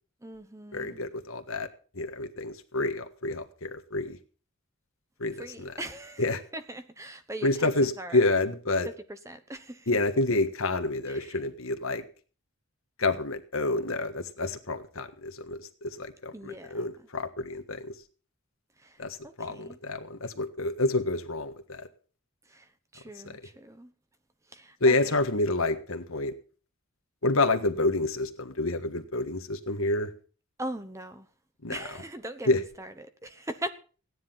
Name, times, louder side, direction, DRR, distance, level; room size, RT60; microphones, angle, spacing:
voice 1, 0.2-1.0 5.4-8.2 8.8-9.9 11.1-11.4 16.3-16.8 18.8-19.8 22.5-23.9 24.5-25.2 30.6-31.3 31.7-33.7, right 1 dB, 15° right, 0.9 m, -40 dB
voice 2, 0.7-1.7 1.9-4.2 5.2-5.7 6.2-6.4 7.4-8.9 9.9-12.0 13.0-17.9 19.0-21.9 23.2-23.4 24.8-26.3 27.2-30.1 31.6-31.8 32.5-32.6, left 2 dB, 75° left, 1.5 m, -28 dB
15.5 x 10.0 x 5.7 m
head